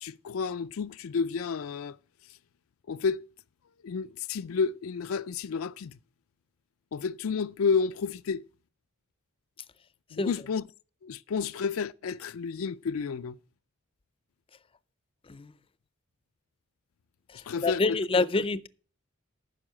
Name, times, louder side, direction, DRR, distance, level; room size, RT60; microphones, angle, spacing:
voice 1, 0.0-2.0 2.9-3.3 3.8-6.0 6.9-8.5 10.1-10.6 11.0-13.4 17.5-18.0, left 5 dB, 85° left, 0.4 m, -31 dB
voice 2, 17.3-18.7, left 3 dB, 25° left, 0.5 m, -27 dB
9.7 x 6.2 x 8.7 m
head